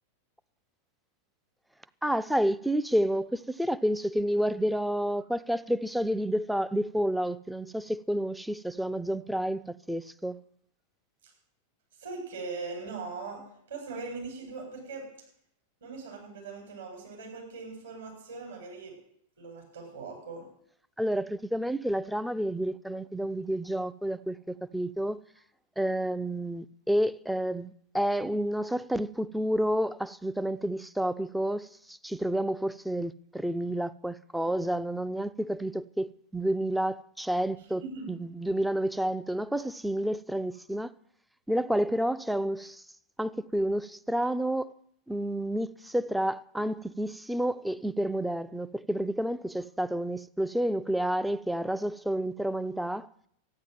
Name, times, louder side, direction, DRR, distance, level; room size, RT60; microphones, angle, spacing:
voice 1, 2.0-10.4 21.0-25.2 25.8-37.8 38.1-40.9 41.5-42.8 43.2-44.7 45.1-53.1, equal, ahead, 0.5 m, -30 dB
voice 2, 11.9-15.1 15.8-19.0 19.4-20.5 37.6-38.1, right 4 dB, 65° right, 7.9 m, -40 dB
13.5 x 9.6 x 9.4 m
figure-of-eight pair, 90°, 0 cm